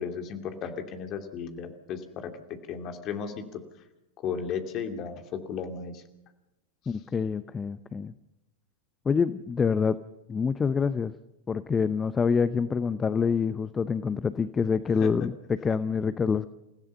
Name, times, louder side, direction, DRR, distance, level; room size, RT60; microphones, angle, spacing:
voice 1, 0.0-2.3 2.7-3.6 4.2-5.2 5.5-6.0 15.0-15.1, left 6 dB, 35° left, 6 dB, 2.6 m, -34 dB
voice 2, 6.9-8.1 9.0-10.0 10.3-11.1 11.5-16.5, left 5 dB, 20° left, 14 dB, 0.7 m, -26 dB
29.0 x 16.0 x 5.5 m, 0.94 s
figure-of-eight pair, 90°, 0 cm